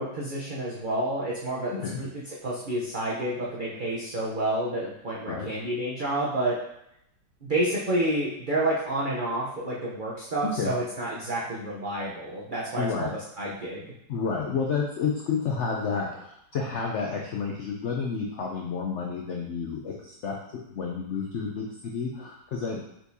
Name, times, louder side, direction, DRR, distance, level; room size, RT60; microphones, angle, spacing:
voice 1, 0.0-6.6 7.4-13.9, right 1 dB, 70° right, -5 dB, 0.4 m, -29 dB
voice 2, 1.7-2.0 5.3-5.5 10.4-10.7 12.8-13.1 14.1-20.4 20.7-22.8, left 5 dB, 85° left, -1 dB, 0.6 m, -30 dB
4.6 x 4.3 x 2.7 m, 0.77 s
omnidirectional pair, 2.0 m